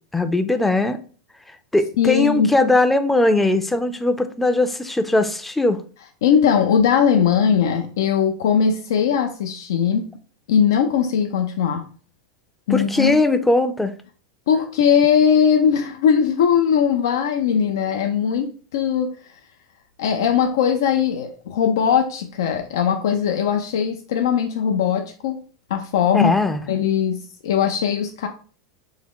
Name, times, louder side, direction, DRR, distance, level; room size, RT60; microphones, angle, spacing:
voice 1, 0.1-1.0 1.7-5.8 12.7-13.9 26.1-26.6, left 2 dB, 5° left, 0.4 m, -19 dB
voice 2, 2.0-2.5 6.2-10.1 10.5-11.9 12.7-13.1 14.5-19.1 20.0-25.4 25.7-26.3 26.7-28.3, left 7 dB, 80° left, 0.4 m, -19 dB
3.5 x 2.1 x 3.6 m
hypercardioid pair, 105°, 2 cm